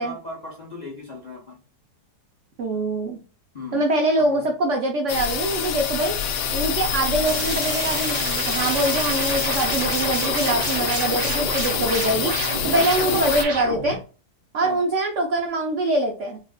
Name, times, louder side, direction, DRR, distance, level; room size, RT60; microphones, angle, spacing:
voice 1, 0.0-1.6 3.5-3.8 4.2-4.5 10.4-10.7 12.7-13.3 14.6-14.8, left 2 dB, 60° left, 0.4 m, -37 dB
voice 2, 2.6-3.2 3.7-6.1 6.5-14.0 14.5-16.4, right 1 dB, 65° right, 0.8 m, -24 dB
sound 1, 5.1-13.4, left 7 dB, 85° left, 1.2 m, -26 dB
sound 2, 7.2-14.0, right 2 dB, 35° right, 0.6 m, -29 dB
4.4 x 2.4 x 2.3 m
omnidirectional pair, 1.7 m